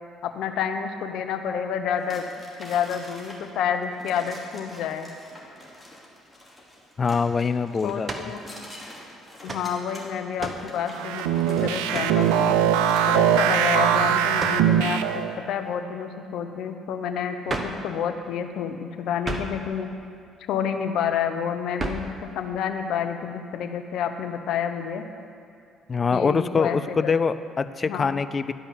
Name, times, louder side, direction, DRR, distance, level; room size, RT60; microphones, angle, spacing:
voice 1, 0.2-2.3 2.6-5.1 7.8-8.4 9.4-12.6 13.1-19.9 20.5-25.0 26.1-27.1 27.8-28.1, left 8 dB, 65° left, 7 dB, 0.7 m, -29 dB
sound 1, 2.0-13.6, left 1 dB, 10° left, 2.8 m, -46 dB
voice 2, 7.0-8.3 25.9-28.5, left 5 dB, 35° left, 12 dB, 0.4 m, -24 dB
sound 2, 8.0-8.4 9.5-9.7 10.4-10.7 11.9-12.2 14.4-14.7 17.5-17.8 19.2-19.6 21.8-22.1, right 2 dB, 30° right, 1.1 m, -32 dB
sound 3, 10.9-15.4, right 9 dB, 75° right, 0.4 m, -21 dB
11.5 x 5.3 x 7.5 m, 2.4 s
hypercardioid pair, 55°, 0 cm